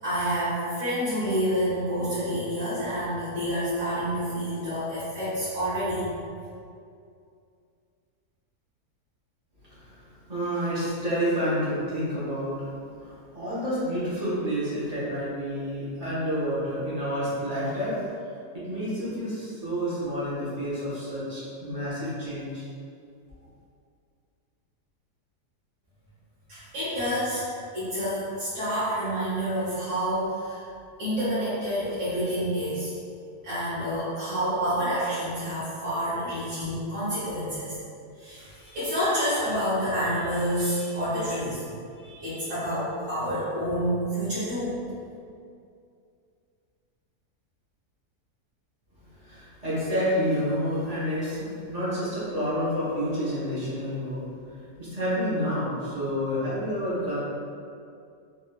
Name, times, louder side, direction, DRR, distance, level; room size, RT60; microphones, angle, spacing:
voice 1, 0.0-6.1 26.5-27.4 27.7-30.6 31.0-32.9 33.4-37.8 38.2-41.6 41.9-44.7, equal, 50° right, -14 dB, 1.4 m, -28 dB
voice 2, 9.7-12.7 13.0-18.0 18.5-22.6 49.2-54.2 54.5-57.2, equal, 25° right, -11 dB, 1.1 m, -29 dB
3.4 x 2.8 x 2.3 m, 2.4 s
omnidirectional pair, 1.7 m